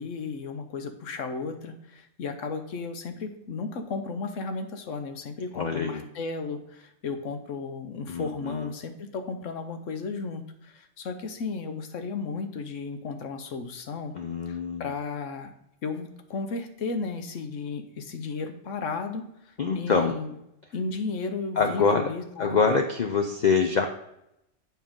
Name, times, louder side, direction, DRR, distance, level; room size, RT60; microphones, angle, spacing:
voice 1, 0.0-14.1 14.5-15.5 15.8-20.3 20.7-22.8, left 4 dB, 80° left, 7 dB, 1.3 m, -34 dB
voice 2, 5.5-6.0 8.1-8.7 14.1-14.9 19.6-20.2 21.6-22.0 22.4-23.9, left 5 dB, 50° left, 4 dB, 0.6 m, -25 dB
7.3 x 5.5 x 3.7 m, 0.83 s
omnidirectional pair, 1.3 m